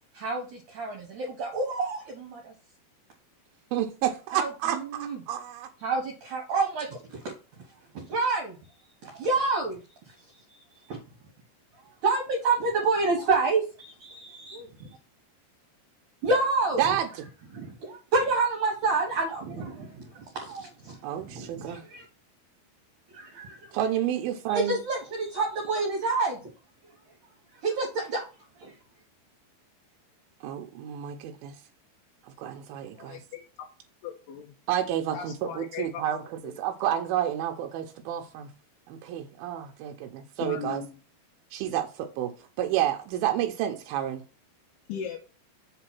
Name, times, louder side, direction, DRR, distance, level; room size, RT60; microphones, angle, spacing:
voice 1, 0.1-2.5 4.3-5.2 5.8-7.7 7.9-8.7 9.0-11.0 11.7-15.0 16.2-17.0 17.5-22.0 23.1-23.8 24.5-26.5 26.8-26.9 27.5-28.2 28.6-28.8, right 3 dB, 60° right, 2.4 m, -29 dB
voice 2, 3.7-5.7 16.8-17.1 21.0-21.8 23.7-24.8 30.4-31.6 32.4-33.2 34.7-38.5 38.9-40.8 41.5-44.2, right 11 dB, 80° right, 2.2 m, -30 dB
voice 3, 32.9-33.4 34.0-34.5 35.1-36.0 36.4-36.6 40.4-41.0 44.9-45.2, left 8 dB, 80° left, 2.9 m, -38 dB
7.5 x 3.9 x 5.9 m
omnidirectional pair, 4.9 m